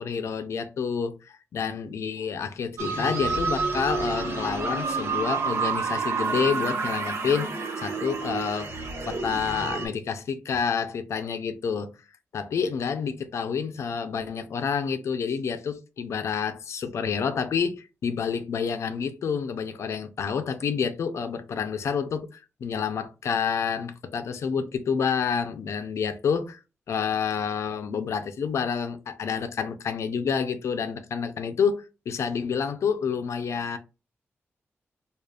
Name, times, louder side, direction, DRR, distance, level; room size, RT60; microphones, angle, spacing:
voice 1, 0.0-7.5 7.8-8.7 9.0-11.9 12.3-26.6 26.9-33.8, left 6 dB, 85° left, 0.5 m, -28 dB
sound 1, 2.8-9.9, right 4 dB, 70° right, 1.1 m, -29 dB
4.9 x 2.4 x 2.3 m
wide cardioid pair, 95°, 5 cm